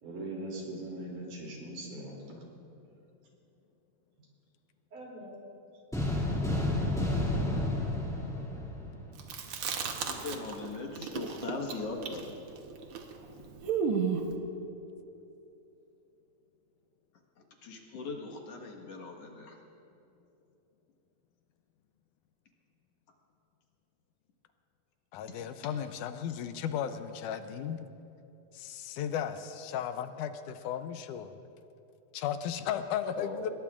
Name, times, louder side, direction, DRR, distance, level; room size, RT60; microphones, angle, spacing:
voice 1, 0.0-2.4 4.9-5.4, right 1 dB, 80° right, -2 dB, 4.4 m, -41 dB
sound 1, 5.9-9.4, left 1 dB, ahead, 1.9 m, -31 dB
Chewing mastication, 9.2-10.7 10.9-14.3, right 6 dB, 60° right, 1.5 m, -33 dB
voice 2, 10.0-12.4 17.6-19.6 33.2-33.5, left 3 dB, 55° left, 0 dB, 2.4 m, -39 dB
voice 3, 25.1-27.9 28.5-31.4 32.1-33.5, left 9 dB, 90° left, 9 dB, 2.2 m, -35 dB
26.0 x 21.0 x 2.5 m, 2.9 s
omnidirectional pair, 3.6 m